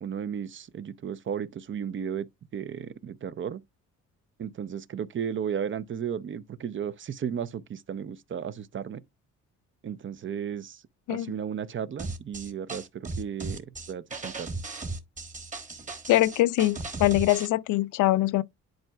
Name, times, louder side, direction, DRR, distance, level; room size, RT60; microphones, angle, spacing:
voice 1, 0.0-2.3 2.5-3.6 4.4-9.0 9.8-10.8 11.1-14.5, right 8 dB, 40° right, 0.6 m, -34 dB
sound 1, 12.0-17.5, right 3 dB, 25° right, 1.3 m, -36 dB
voice 2, 16.1-18.4, left 16 dB, 85° left, 0.5 m, -23 dB
10.5 x 4.4 x 2.3 m
cardioid pair, 90°, 30 cm